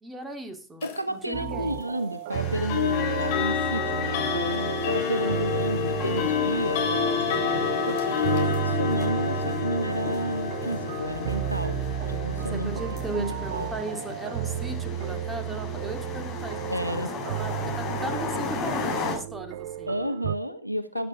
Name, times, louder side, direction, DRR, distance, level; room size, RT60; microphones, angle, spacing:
voice 1, 0.0-1.8 12.5-19.9, right 2 dB, 10° right, 6 dB, 2.3 m, -38 dB
sound 1, 0.8-1.0 2.7-15.5, left 7 dB, 50° left, 3.9 m, -29 dB
voice 2, 0.8-11.8 12.1-13.7 16.7-17.1 19.9-21.1, right 1 dB, 90° right, 13 dB, 0.9 m, -31 dB
sound 2, 1.3-20.4, right 12 dB, 50° right, 0.5 m, -33 dB
sound 3, 2.3-19.1, left 3 dB, 30° left, 6.2 m, -36 dB
13.5 x 10.0 x 3.6 m, 0.35 s
figure-of-eight pair, 90°, 0 cm